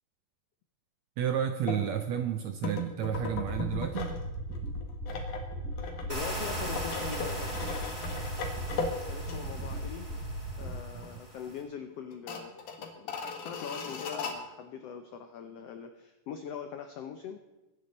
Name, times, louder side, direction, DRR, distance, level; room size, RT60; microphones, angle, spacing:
voice 1, 1.2-4.1 10.9-11.0, right 9 dB, 75° right, 7 dB, 1.6 m, -31 dB
sound 1, 1.7-1.8 2.6-4.2 4.5-9.8 10.1-10.2 10.7-11.2 11.5-11.6 12.1-14.3, left 4 dB, 65° left, 3.1 m, -38 dB
sound 2, 3.3-10.7, right 1 dB, 35° right, 6.4 m, -37 dB
voice 2, 6.0-7.5 9.1-10.1 10.6-17.4, left 7 dB, 85° left, 7 dB, 1.3 m, -42 dB
sound 3, 6.1-11.6, right 1 dB, 10° right, 3.2 m, -40 dB
22.5 x 9.9 x 4.1 m, 1.1 s
omnidirectional pair, 3.9 m